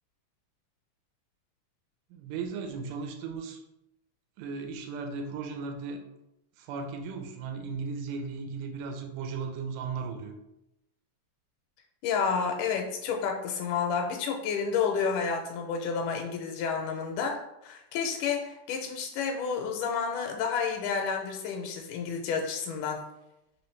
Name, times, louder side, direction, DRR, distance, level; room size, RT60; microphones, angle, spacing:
voice 1, 2.1-3.6 4.4-6.0 6.6-10.3, right 5 dB, 90° right, 3 dB, 2.1 m, -36 dB
voice 2, 12.0-23.0, left 6 dB, 85° left, 2 dB, 2.0 m, -30 dB
4.8 x 3.0 x 3.1 m, 0.88 s
omnidirectional pair, 3.6 m